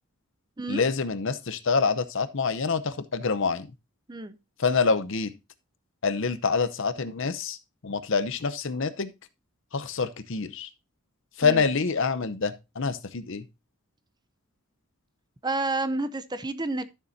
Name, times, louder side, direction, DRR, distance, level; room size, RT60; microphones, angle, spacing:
voice 1, 0.7-3.7 4.6-5.3 6.0-7.6 7.8-9.1 9.7-10.7 11.4-13.4, left 5 dB, 60° left, 0.7 m, -26 dB
voice 2, 15.4-16.8, right 2 dB, 20° right, 0.6 m, -29 dB
12.5 x 6.8 x 2.7 m
head